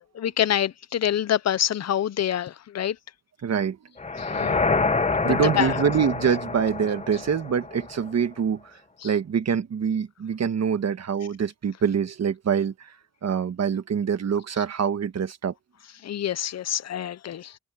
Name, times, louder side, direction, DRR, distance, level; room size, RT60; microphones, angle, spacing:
voice 1, 0.0-3.0 4.2-4.9 5.3-5.8 9.0-9.1 16.0-17.6, left 10 dB, 55° left, 0.7 m, -27 dB
voice 2, 3.4-3.8 5.2-8.8 9.0-13.0 13.2-15.5, right 7 dB, 60° right, 1.5 m, -25 dB
sound 1, 4.0-8.1, left 4 dB, 20° left, 1.0 m, -27 dB
cardioid pair, 100°, 30 cm